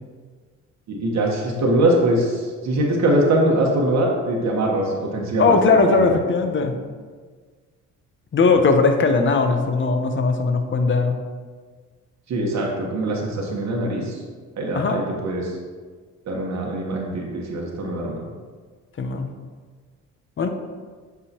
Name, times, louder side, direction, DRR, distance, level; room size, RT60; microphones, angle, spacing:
voice 1, 0.9-6.2 12.3-14.2 14.6-15.5 16.3-18.2, right 1 dB, 65° right, -1 dB, 1.2 m, -22 dB
voice 2, 5.4-6.8 8.3-11.2 14.7-15.0 19.0-19.3 20.4-20.5, left 4 dB, 40° left, 6 dB, 0.8 m, -19 dB
8.1 x 4.8 x 2.9 m, 1.5 s
cardioid pair, 90°, 30 cm